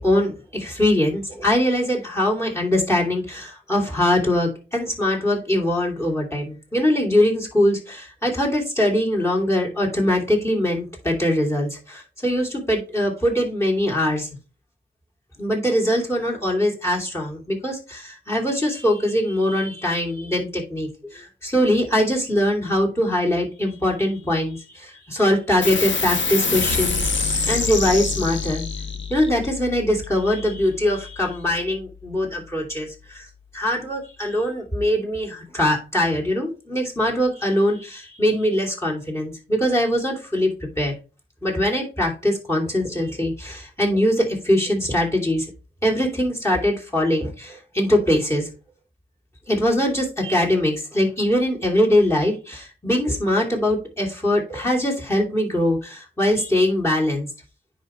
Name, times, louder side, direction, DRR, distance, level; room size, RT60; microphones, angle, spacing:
voice 1, 0.0-14.3 15.4-27.1 27.5-28.7 29.1-33.3 33.5-40.9 41.4-45.5 45.8-48.5 49.5-57.3, left 1 dB, 15° left, 1 dB, 2.7 m, -22 dB
sound 1, 25.6-32.5, left 4 dB, 80° left, 1.2 m, -27 dB
9.9 x 4.4 x 3.1 m, 0.33 s
wide cardioid pair, 95°, 19 cm